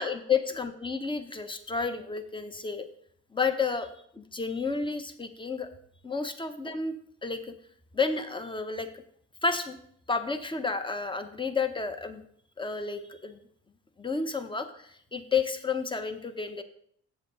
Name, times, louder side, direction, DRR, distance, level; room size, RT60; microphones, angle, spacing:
voice 1, 0.0-2.9 3.3-3.9 4.2-5.7 6.0-7.0 7.2-7.4 7.9-8.9 9.4-9.8 10.1-12.2 12.6-13.4 14.0-16.6, left 5 dB, 15° left, 9 dB, 0.9 m, -31 dB
8.0 x 7.8 x 4.0 m, 0.66 s
cardioid pair, 90°, 30 cm